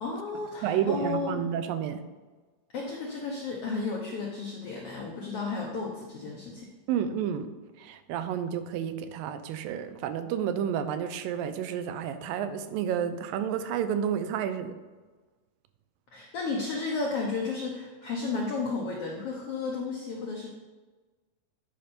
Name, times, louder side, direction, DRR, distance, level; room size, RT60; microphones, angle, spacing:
voice 1, 0.0-1.5 2.7-6.7 16.1-20.5, left 4 dB, 75° left, -1 dB, 1.3 m, -33 dB
voice 2, 0.6-2.0 6.9-7.5 7.8-14.8, right 8 dB, 85° right, 10 dB, 2.4 m, -30 dB
10.0 x 5.2 x 4.3 m, 1.3 s
omnidirectional pair, 3.9 m